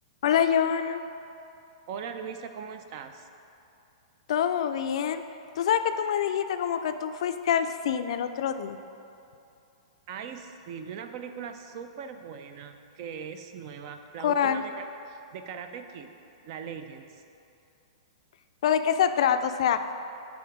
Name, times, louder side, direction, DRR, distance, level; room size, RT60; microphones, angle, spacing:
voice 1, 0.2-1.0 4.3-5.2 5.6-8.8 14.2-14.6 18.6-19.8, left 8 dB, 65° left, 9 dB, 0.3 m, -25 dB
voice 2, 1.9-3.3 10.1-16.1 16.4-17.2, right 7 dB, 50° right, 8 dB, 0.5 m, -40 dB
7.7 x 3.5 x 4.9 m, 2.7 s
hypercardioid pair, 135°, 3 cm